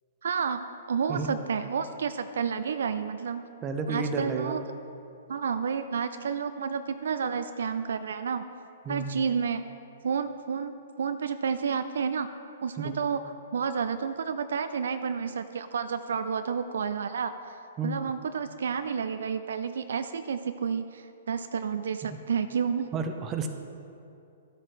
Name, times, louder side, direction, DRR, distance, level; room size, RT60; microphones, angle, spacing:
voice 1, 0.2-0.6 0.9-3.4 3.9-4.6 5.3-8.4 8.9-9.6 10.0-12.3 12.6-13.2 13.5-22.9, right 6 dB, 70° right, 10 dB, 0.4 m, -30 dB
voice 2, 3.6-4.6 8.9-9.2 12.8-13.0 17.8-18.0 22.9-23.5, right 4 dB, 25° right, 6 dB, 0.8 m, -31 dB
12.5 x 7.7 x 3.2 m, 2.7 s
hypercardioid pair, 120°, 0 cm